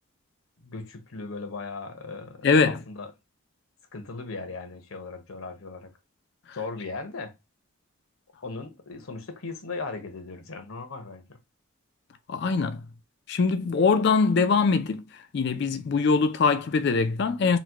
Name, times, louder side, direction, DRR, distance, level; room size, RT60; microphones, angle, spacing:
voice 1, 0.6-3.1 3.9-5.9 6.5-7.3 8.4-11.4, left 3 dB, 90° left, 0.9 m, -38 dB
voice 2, 2.4-2.8 12.3-12.8 13.3-15.0 15.3-17.6, left 4 dB, 55° left, 0.4 m, -22 dB
4.0 x 2.2 x 2.9 m
head